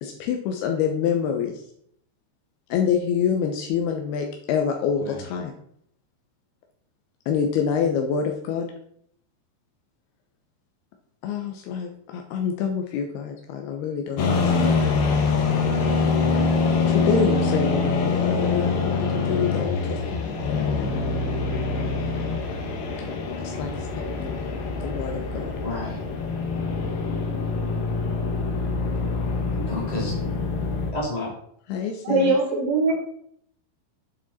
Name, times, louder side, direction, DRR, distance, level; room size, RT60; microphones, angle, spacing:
voice 1, 0.0-1.5 2.7-5.5 7.3-8.7 11.2-14.8 16.9-20.6 23.0-23.7 24.0-24.3 24.8-25.5 31.7-32.4, left 7 dB, 80° left, 3 dB, 2.3 m, -27 dB
sound 1, 14.2-30.9, left 4 dB, 65° left, 2.6 m, -25 dB
voice 2, 15.7-16.7 25.6-26.0 29.5-30.1 30.9-31.3, left 1 dB, 15° left, -3 dB, 1.6 m, -31 dB
voice 3, 32.0-32.9, right 3 dB, 85° right, 0 dB, 1.5 m, -21 dB
8.9 x 7.4 x 4.2 m, 0.67 s
omnidirectional pair, 5.7 m